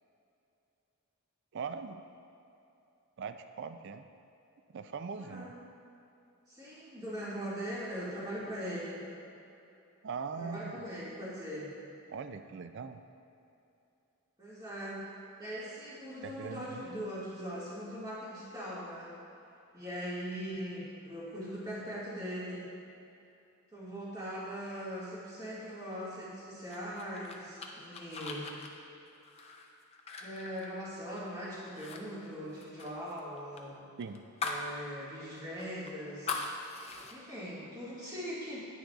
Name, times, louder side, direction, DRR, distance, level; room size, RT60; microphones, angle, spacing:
voice 1, 1.5-2.0 3.2-4.1 4.7-5.5 10.0-10.8 12.1-13.0 16.2-16.8 34.0-34.2, right 5 dB, 55° right, 9 dB, 0.4 m, -41 dB
voice 2, 5.2-5.5 6.5-9.0 10.4-11.7 14.4-15.0 15.4-19.1 19.7-22.6 23.7-28.5 30.2-33.9 34.4-36.4 37.1-38.7, equal, 15° right, -9 dB, 1.9 m, -40 dB
sound 1, 26.7-31.3 31.7-32.0 32.3-34.7 35.1-35.2 35.6-37.1, left 4 dB, 30° left, 0.5 m, -41 dB
10.5 x 9.2 x 2.4 m, 2.8 s
head